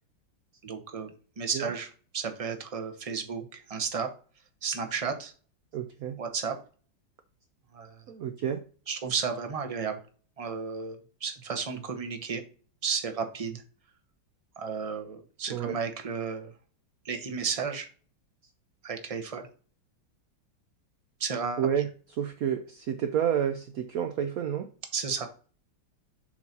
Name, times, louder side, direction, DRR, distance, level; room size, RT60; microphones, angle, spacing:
voice 1, 0.6-4.1 4.6-5.3 6.2-6.6 7.7-8.0 8.9-10.0 10.4-12.4 12.8-13.6 14.6-16.5 17.0-17.9 18.8-19.5 21.2-21.7 24.9-25.3, right 5 dB, 30° right, 5 dB, 0.6 m, -33 dB
voice 2, 5.7-6.2 8.1-8.6 15.5-15.8 21.6-21.9 22.2-24.7, right 9 dB, 65° right, 7 dB, 0.9 m, -29 dB
7.2 x 2.8 x 5.9 m, 0.40 s
omnidirectional pair, 2.0 m